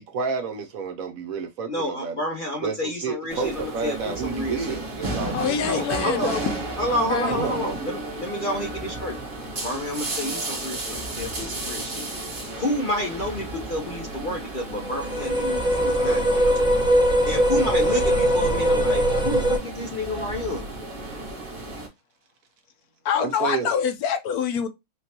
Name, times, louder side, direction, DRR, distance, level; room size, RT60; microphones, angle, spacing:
voice 1, 0.0-2.1 2.6-6.1 7.3-7.9 23.2-23.7, right 5 dB, 65° right, 1.2 m, -30 dB
voice 2, 1.7-4.8 5.6-6.3 6.8-9.2 9.6-12.1 12.6-16.7 17.3-20.6, left 1 dB, 50° left, 0.6 m, -29 dB
sound 1, 3.3-21.9, right 2 dB, 35° right, 1.3 m, -34 dB
voice 3, 5.3-6.5 6.9-7.3 23.0-24.7, left 7 dB, 75° left, 1.1 m, -25 dB
sound 2, 14.8-19.6, equal, 5° right, 0.9 m, -21 dB
4.2 x 3.1 x 2.8 m
omnidirectional pair, 1.7 m